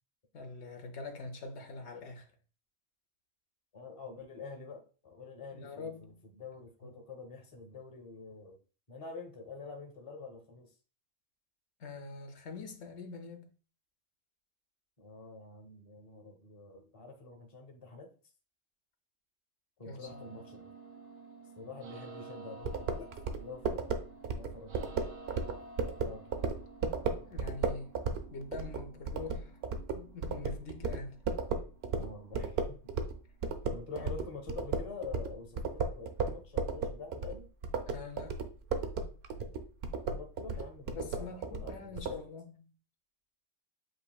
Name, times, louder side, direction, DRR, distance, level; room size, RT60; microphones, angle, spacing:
voice 1, 0.3-2.3 5.5-6.3 6.8-6.9 11.8-13.5 19.8-20.2 27.2-28.0 28.3-29.6 29.9-31.2 34.0-34.3 37.9-38.5 40.9-42.6, left 3 dB, 75° left, 1.0 m, -44 dB
voice 2, 3.7-8.6 8.9-10.7 15.0-18.1 19.8-20.7 21.5-23.1 23.4-23.9 24.3-25.0 25.8-26.3 32.0-32.8 33.7-37.5 40.1-42.2, left 4 dB, 30° left, 0.8 m, -47 dB
sound 1, 20.0-33.9, right 3 dB, 90° right, 1.1 m, -53 dB
sound 2, 22.6-33.2 33.4-42.2, right 4 dB, 70° right, 0.8 m, -34 dB
7.8 x 2.7 x 2.2 m
omnidirectional pair, 1.2 m